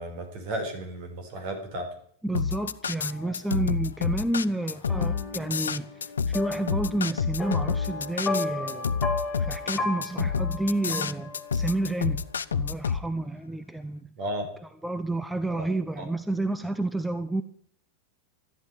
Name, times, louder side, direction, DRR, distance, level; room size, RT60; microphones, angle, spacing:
voice 1, 0.0-1.9 14.2-14.5 15.5-15.7 16.0-16.1, right 1 dB, 45° right, 6 dB, 4.4 m, -34 dB
voice 2, 2.2-5.9 6.3-8.9 9.4-12.2 12.5-14.1 14.8-17.4, right 2 dB, 5° right, 11 dB, 0.7 m, -30 dB
sound 1, 2.3-13.0, left 6 dB, 70° left, 0.6 m, -28 dB
sound 2, 4.9-11.9, left 3 dB, 10° left, 3.4 m, -35 dB
13.5 x 10.5 x 9.0 m, 0.64 s
figure-of-eight pair, 90°, 0 cm